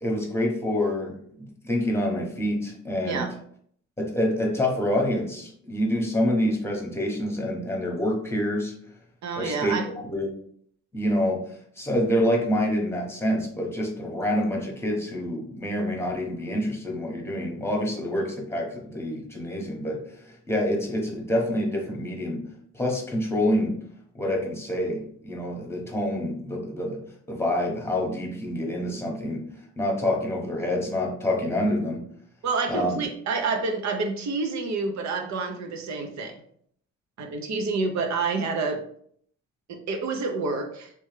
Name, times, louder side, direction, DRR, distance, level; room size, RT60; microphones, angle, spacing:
voice 1, 0.0-3.3 4.0-8.7 9.4-10.3 10.9-11.4 11.8-22.4 22.7-23.8 24.1-29.4 29.8-32.0 32.7-33.0, left 1 dB, 10° left, 0 dB, 1.1 m, -27 dB
voice 2, 9.2-9.9 32.4-36.4 37.2-38.8 39.7-40.9, right 4 dB, 65° right, 4 dB, 0.8 m, -28 dB
3.3 x 3.1 x 3.3 m, 0.62 s
cardioid pair, 90°, 30 cm